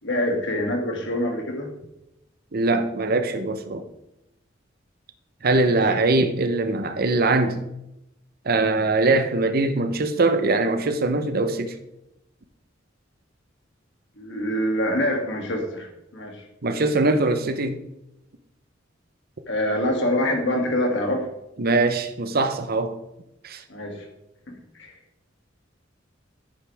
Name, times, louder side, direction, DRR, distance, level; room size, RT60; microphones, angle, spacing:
voice 1, 0.0-1.7 5.8-6.0 14.2-16.4 19.5-21.3 23.7-24.1 24.5-24.9, left 1 dB, 65° left, 2.4 m, -25 dB
voice 2, 2.5-3.9 5.4-7.6 8.4-11.7 16.6-17.8 21.6-23.0 23.4-23.6, right 2 dB, 50° right, 0.8 m, -22 dB
10.0 x 9.5 x 3.5 m
head